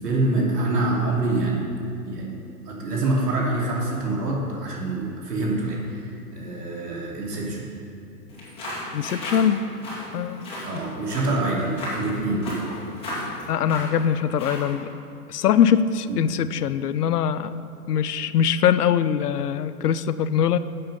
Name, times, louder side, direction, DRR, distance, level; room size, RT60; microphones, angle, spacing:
voice 1, 0.0-1.7 2.0-2.4 2.7-7.7 10.6-12.5 16.1-16.2, right 2 dB, 85° right, -3 dB, 3.0 m, -26 dB
sound 1, 8.3-14.8, left 1 dB, 10° left, 2.8 m, -35 dB
voice 2, 8.9-9.6 10.1-10.6 13.5-14.9 15.3-17.5 17.9-20.6, left 8 dB, 75° left, 13 dB, 0.7 m, -22 dB
12.0 x 7.8 x 5.5 m, 2.6 s
hypercardioid pair, 155°, 46 cm